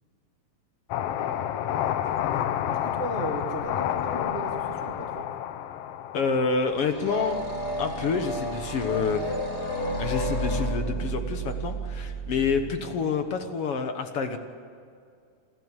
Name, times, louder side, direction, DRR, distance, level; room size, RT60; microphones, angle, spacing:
sound 1, 0.9-7.4, left 10 dB, 80° left, 1.4 m, -30 dB
sound 2, 1.7-4.4 4.7-5.0 6.7-12.6, right 1 dB, 20° left, 4.5 m, -32 dB
voice 1, 2.7-5.3, right 1 dB, 55° right, 1 dB, 0.7 m, -36 dB
voice 2, 6.1-7.4 7.8-9.2 10.0-14.4, left 5 dB, 60° left, 7 dB, 1.8 m, -28 dB
27.5 x 12.0 x 8.3 m, 2.3 s
omnidirectional pair, 3.7 m